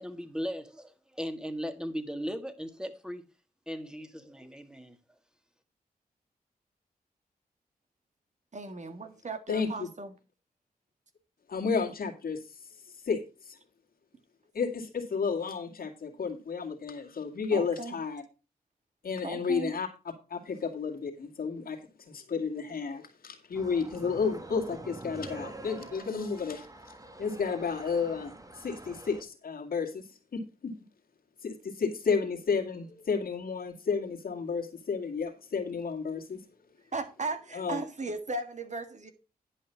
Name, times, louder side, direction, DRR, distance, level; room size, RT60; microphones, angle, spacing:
voice 1, 0.0-3.2 3.7-5.0, equal, 5° right, 1.9 m, -37 dB
voice 2, 8.5-10.1 17.5-17.9 19.2-19.7 36.9-39.1, right 3 dB, 50° right, 1.9 m, -36 dB
voice 3, 9.5-9.9 11.5-13.6 14.5-18.2 19.0-19.9 20.3-26.9 27.2-30.8 31.4-36.5 37.5-37.8, left 5 dB, 70° left, 2.1 m, -32 dB
sound 1, 23.5-29.2, right 2 dB, 20° right, 1.7 m, -45 dB
10.5 x 5.5 x 5.7 m
cardioid pair, 55°, 16 cm